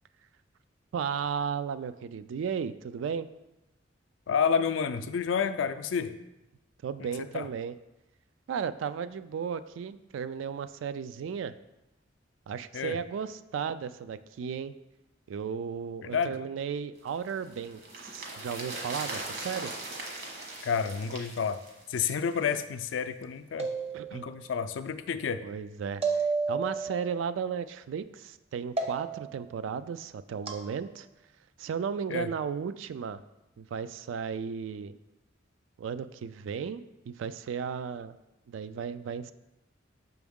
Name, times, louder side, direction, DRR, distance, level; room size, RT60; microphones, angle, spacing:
voice 1, 0.9-3.3 6.8-7.7 8.5-11.5 12.5-14.7 15.3-19.7 23.9-24.3 25.4-26.0 26.5-31.1 31.6-33.2 33.6-35.0 35.8-38.2 38.5-39.3, right 7 dB, 75° right, 13 dB, 0.3 m, -35 dB
voice 2, 4.3-6.1 7.0-7.5 12.7-13.0 16.0-16.3 20.6-21.6 21.9-23.7 24.1-25.4 32.1-32.3, left 6 dB, 70° left, 11 dB, 0.4 m, -30 dB
sound 1, 17.1-22.5 22.8-22.9, right 2 dB, 55° right, 1.3 m, -40 dB
sound 2, 23.6-24.4 26.0-27.0 28.8-29.4 30.5-30.7, right 4 dB, 35° right, 0.6 m, -31 dB
6.1 x 4.7 x 3.6 m, 0.97 s
head